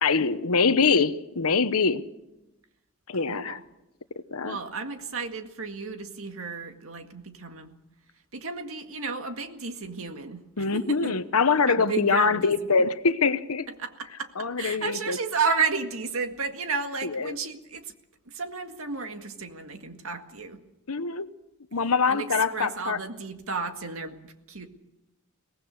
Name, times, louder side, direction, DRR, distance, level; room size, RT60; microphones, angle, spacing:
voice 1, 0.0-2.0 3.1-3.6 4.3-4.6 10.6-13.7 14.4-15.2 17.0-17.4 20.9-21.3 21.7-23.0, left 4 dB, 80° left, 12 dB, 1.0 m, -24 dB
voice 2, 3.3-3.6 4.4-7.7 8.3-10.4 10.7-11.2 11.7-12.5 13.8-17.9 18.3-20.6 22.1-24.7, right 4 dB, 70° right, 6 dB, 1.9 m, -32 dB
23.0 x 18.5 x 6.5 m, 0.94 s
head